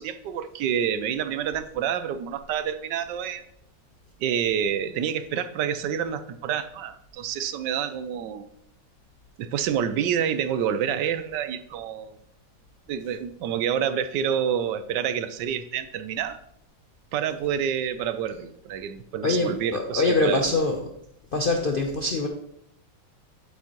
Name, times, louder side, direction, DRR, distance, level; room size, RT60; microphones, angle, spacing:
voice 1, 0.0-3.5 4.2-8.5 9.4-12.2 12.9-16.4 17.1-20.5, right 8 dB, 75° right, 12 dB, 1.2 m, -28 dB
voice 2, 19.2-20.8 21.3-22.3, left 2 dB, 60° left, 3 dB, 0.5 m, -24 dB
8.4 x 8.1 x 3.0 m, 0.73 s
omnidirectional pair, 2.0 m